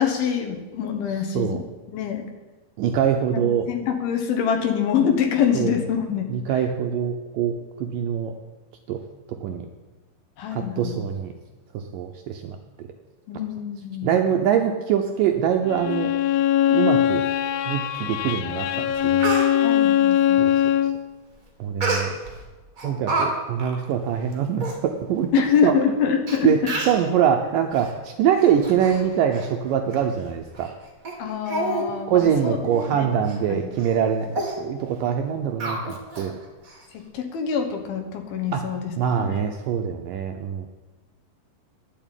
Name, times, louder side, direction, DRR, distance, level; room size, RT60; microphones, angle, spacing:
voice 1, 0.0-1.6 1.9-2.3 3.7-6.7 10.4-11.0 13.3-14.1 19.6-20.4 25.3-26.5 31.2-32.6 32.9-33.7 36.9-38.9 39.2-39.4, left 7 dB, 75° left, 5 dB, 3.0 m, -25 dB
voice 2, 2.8-3.7 5.5-5.7 6.3-7.5 7.8-8.3 8.9-9.0 9.4-9.7 10.5-11.3 11.7-12.6 14.0-16.1 16.7-17.2 17.7-19.3 20.4-20.5 21.6-22.1 22.8-25.3 25.6-26.0 26.4-26.6 26.9-30.7 32.1-36.4 38.5-38.6 39.0-40.7, right 8 dB, 80° right, 4 dB, 2.0 m, -23 dB
Bowed string instrument, 15.7-21.0, left 11 dB, 90° left, 2.7 m, -21 dB
Speech, 18.5-18.6 18.9-19.5 21.8-22.4 22.8-23.3 23.6-23.8 24.3-24.4 24.6-24.8 25.5-25.6 26.3-26.4 26.7-27.0 27.7-27.9 28.3-29.0 29.3-29.5 29.9-30.0 30.6-30.7 31.0-31.2 31.5-31.9 32.2-32.3 32.7-32.9 33.3-33.4 33.8-34.0 34.3-34.5 35.6-36.3 36.6-36.7, right 2 dB, 40° right, 1.3 m, -28 dB
11.0 x 7.2 x 9.0 m, 1.2 s
omnidirectional pair, 4.6 m